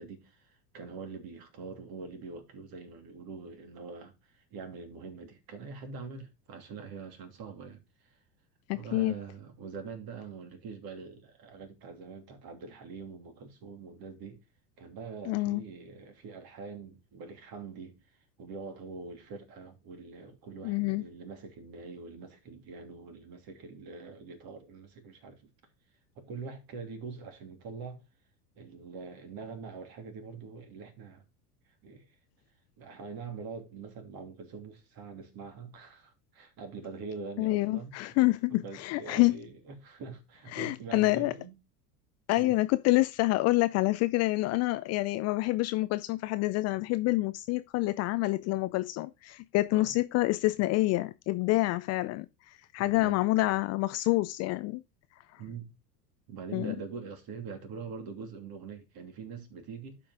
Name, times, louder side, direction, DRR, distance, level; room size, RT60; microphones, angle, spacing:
voice 1, 0.0-8.2 8.7-14.4 14.8-18.0 18.4-25.5 26.1-28.0 28.5-31.2 31.8-32.1 32.8-37.9 38.5-41.6 42.4-42.6 49.7-50.0 52.8-53.2 55.4-55.7 56.3-60.0, right 5 dB, 45° right, 3.0 m, -44 dB
voice 2, 8.7-9.1 15.3-15.6 20.6-21.0 37.4-39.3 40.5-41.3 42.3-54.8 55.3-55.4 56.5-56.7, left 19 dB, 35° left, 0.4 m, -27 dB
12.0 x 5.3 x 3.7 m
hypercardioid pair, 85°, 50 cm